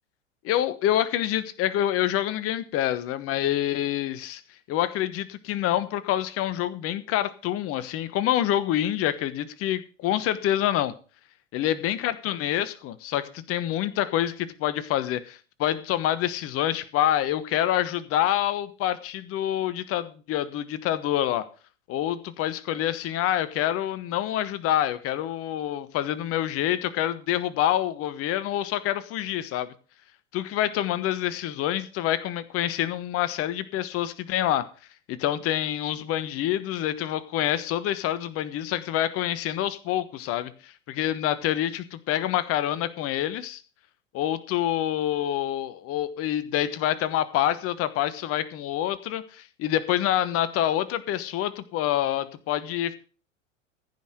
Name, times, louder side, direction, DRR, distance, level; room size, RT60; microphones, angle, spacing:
voice 1, 0.4-4.4 4.7-10.9 11.5-21.5 21.9-29.7 30.3-34.7 35.1-43.6 44.1-53.0, left 12 dB, 35° left, 15 dB, 1.2 m, -27 dB
15.0 x 5.7 x 6.5 m, 0.37 s
figure-of-eight pair, 95°, 39 cm